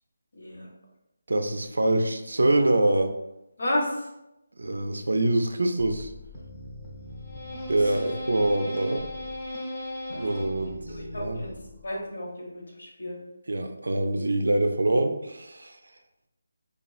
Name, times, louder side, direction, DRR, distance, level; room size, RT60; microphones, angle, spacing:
voice 1, 0.3-0.7 3.6-4.1 7.8-8.0 10.9-11.5 11.8-13.2, left 1 dB, 70° left, -3 dB, 1.0 m, -32 dB
voice 2, 1.3-3.1 4.6-6.1 7.7-9.0 10.1-10.8 11.2-11.4 13.5-15.8, right 2 dB, 75° right, 6 dB, 0.3 m, -24 dB
sound 1, 5.8-12.0, left 1 dB, 15° left, 0.7 m, -37 dB
3.0 x 2.3 x 2.3 m, 0.88 s
figure-of-eight pair, 160°, 0 cm